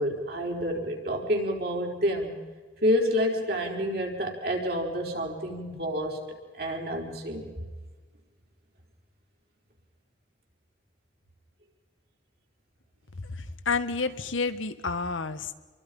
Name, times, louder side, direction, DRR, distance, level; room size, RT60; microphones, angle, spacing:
voice 1, 0.0-2.3 2.8-6.2 6.6-7.5, equal, 50° right, 1 dB, 4.8 m, -28 dB
voice 2, 13.2-15.5, left 4 dB, 85° left, 10 dB, 1.4 m, -30 dB
28.5 x 23.5 x 5.5 m, 1.4 s
head